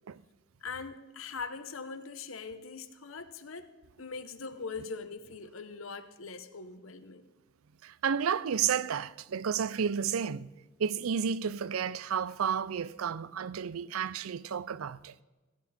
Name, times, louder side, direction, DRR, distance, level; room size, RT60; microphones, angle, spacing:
voice 1, 0.6-3.7 4.0-7.3, left 4 dB, 75° left, 1.0 m, -41 dB
voice 2, 7.8-10.5 10.8-15.2, right 7 dB, 85° right, 0.5 m, -31 dB
16.5 x 16.0 x 4.3 m
head